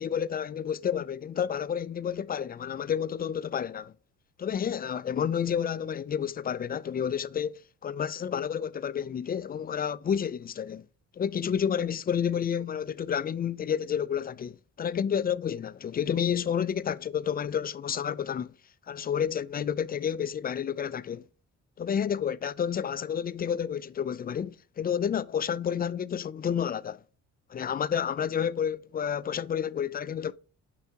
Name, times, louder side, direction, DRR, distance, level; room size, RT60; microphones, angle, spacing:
voice 1, 0.0-3.9 4.4-10.9 11.2-18.5 18.9-21.2 21.8-27.0 27.5-30.3, left 8 dB, 30° left, 0.4 m, -30 dB
8.2 x 5.4 x 2.9 m
cardioid pair, 90°, 30 cm